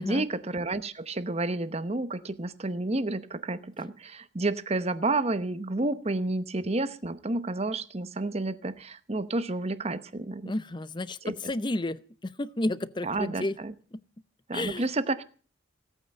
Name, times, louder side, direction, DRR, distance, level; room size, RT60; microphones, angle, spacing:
voice 1, 0.0-10.5 11.2-11.3 13.0-13.7 14.5-15.2, right 2 dB, 30° right, 14 dB, 0.8 m, -30 dB
voice 2, 10.4-13.6 13.9-14.0 14.5-14.8, left 1 dB, 25° left, 16 dB, 0.6 m, -32 dB
16.5 x 8.9 x 7.6 m, 0.41 s
head